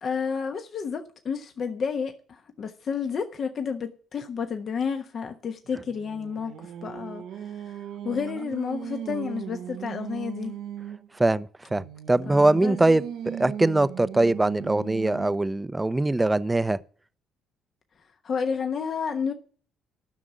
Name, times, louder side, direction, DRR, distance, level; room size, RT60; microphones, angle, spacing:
voice 1, 0.0-10.6 12.3-12.8 18.2-19.3, left 6 dB, 50° left, 1.2 m, -31 dB
Singing, 5.7-11.1 11.7-15.6, right 10 dB, 70° right, 0.9 m, -38 dB
voice 2, 11.2-16.8, right 2 dB, 15° right, 0.7 m, -22 dB
11.5 x 6.2 x 9.1 m
hypercardioid pair, 60°, 0 cm